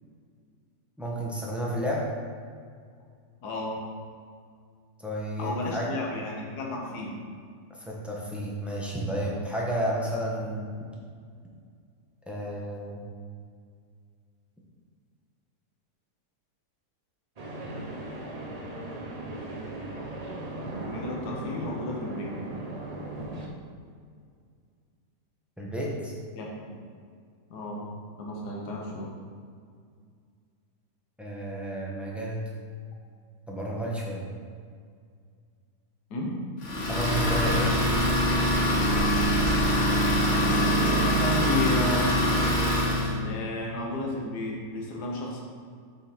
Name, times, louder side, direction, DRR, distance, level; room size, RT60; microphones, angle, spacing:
voice 1, 1.0-2.1 5.0-5.9 7.7-10.7 12.3-13.0 25.6-26.1 31.2-32.5 33.5-34.3 36.9-37.8, right 1 dB, ahead, -4 dB, 0.7 m, -31 dB
voice 2, 3.4-3.8 5.4-7.2 18.8-18.9 20.9-22.5 26.3-26.8 27.5-27.9 28.2-29.1 36.1-36.3 40.3-42.2 43.2-45.4, left 2 dB, 75° left, -2 dB, 1.6 m, -33 dB
sound 1, 17.4-23.5, right 2 dB, 45° right, 0.5 m, -37 dB
Idling, 36.6-43.1, equal, 50° left, 1.4 m, -24 dB
7.7 x 3.8 x 4.4 m, 2.1 s
omnidirectional pair, 1.8 m